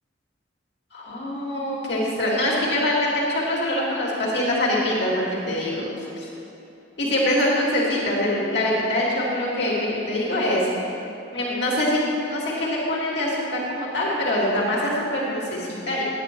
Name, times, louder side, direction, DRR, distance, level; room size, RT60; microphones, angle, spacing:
voice 1, 0.9-5.9 6.2-6.3 7.0-10.7 11.3-16.0, left 1 dB, 60° left, -5 dB, 2.2 m, -24 dB
10.0 x 9.8 x 4.4 m, 3.0 s
head